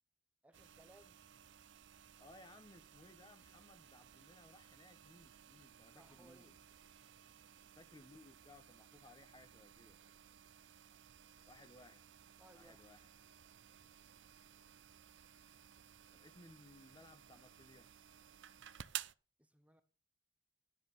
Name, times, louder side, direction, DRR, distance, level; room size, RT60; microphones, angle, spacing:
voice 1, 0.4-1.2 5.9-6.5 12.4-12.8 19.4-19.8, right 1 dB, 5° right, 0.7 m, -64 dB
sound 1, 0.5-19.1, right 11 dB, 75° right, 0.5 m, -56 dB
voice 2, 2.2-6.6 7.8-10.0 11.5-12.0 12.5-13.1 16.1-17.9, left 2 dB, 25° left, 0.9 m, -61 dB
10.5 x 7.9 x 6.7 m
head